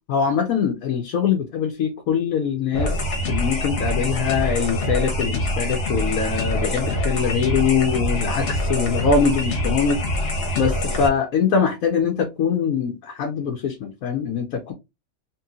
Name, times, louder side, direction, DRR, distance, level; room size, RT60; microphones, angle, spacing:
voice 1, 0.1-3.0 3.3-10.0 10.6-14.7, left 6 dB, 75° left, 1.2 m, -23 dB
sound 1, 2.7-11.1, left 1 dB, 45° left, 1.2 m, -25 dB
3.1 x 3.0 x 3.6 m
omnidirectional pair, 1.5 m